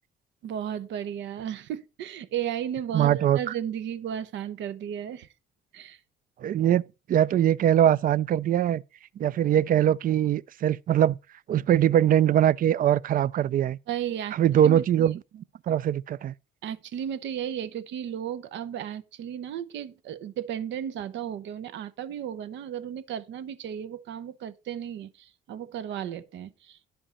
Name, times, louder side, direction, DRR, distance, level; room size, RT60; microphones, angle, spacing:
voice 1, 0.4-5.3 5.7-6.0 13.9-15.4 16.6-26.8, right 9 dB, 75° right, 0.7 m, -34 dB
voice 2, 2.9-3.4 6.4-6.8 7.1-8.8 9.2-11.1 11.5-13.8 14.4-15.2 15.7-16.3, right 10 dB, 50° right, 0.4 m, -22 dB
10.0 x 5.3 x 4.1 m
cardioid pair, 80°, 19 cm